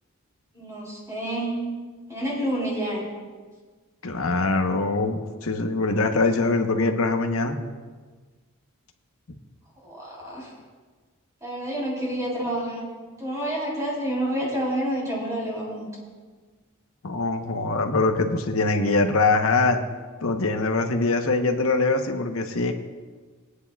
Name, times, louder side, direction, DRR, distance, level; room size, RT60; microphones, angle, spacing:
voice 1, 0.5-1.6 2.1-3.1 9.8-10.5 11.4-12.9 13.2-15.9, right 1 dB, 15° right, -5 dB, 3.5 m, -29 dB
voice 2, 4.0-7.6 10.2-10.4 17.0-19.8 20.2-22.7, left 3 dB, 75° left, 5 dB, 1.0 m, -23 dB
20.0 x 9.7 x 2.3 m, 1.4 s
head